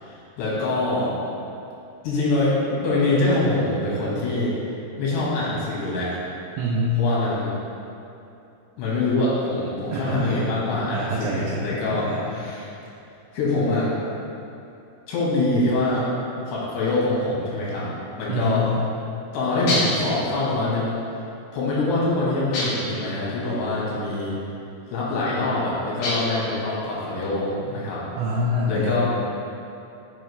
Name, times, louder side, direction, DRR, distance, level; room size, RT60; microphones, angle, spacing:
voice 1, 0.0-1.1 2.0-4.5 5.0-6.1 7.0-7.5 8.8-12.7 13.3-13.9 15.1-16.1 16.5-17.9 18.2-18.7 19.3-20.9 21.5-24.4 24.9-28.0 28.7-29.0, left 2 dB, 85° left, -7 dB, 3.7 m, -24 dB
voice 2, 6.6-7.0 9.9-10.5 10.9-11.7 12.1-12.2 18.3-18.6 28.2-29.0, equal, 85° right, -4 dB, 2.6 m, -25 dB
sound 1, 19.7-20.1 22.5-23.0 26.0-26.5, left 1 dB, 65° left, 2.8 m, -26 dB
7.4 x 5.4 x 3.2 m, 2.7 s
omnidirectional pair, 4.7 m